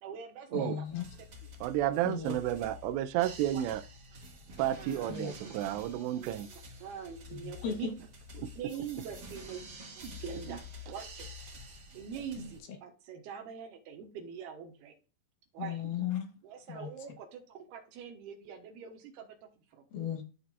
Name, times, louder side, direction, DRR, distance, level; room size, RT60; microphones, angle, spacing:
voice 1, 0.0-0.8 3.5-3.6 4.8-5.2 5.4-5.5 6.2-6.4 6.8-7.9 8.5-9.7 10.0-11.3 11.9-14.9 15.5-15.8 16.4-19.8, right 7 dB, 70° right, 2.9 m, -44 dB
voice 2, 0.5-1.0 1.9-2.3 5.1-5.3 7.3-7.9 12.4-12.5 15.6-16.3 16.7-16.9 19.9-20.2, left 8 dB, 70° left, 2.9 m, -36 dB
sound 1, 0.8-12.6, left 2 dB, 55° right, 1.1 m, -49 dB
voice 3, 1.6-3.8 4.6-6.5 8.4-8.5 10.5-10.6, right 12 dB, 90° right, 2.8 m, -31 dB
12.5 x 4.3 x 2.4 m
omnidirectional pair, 5.0 m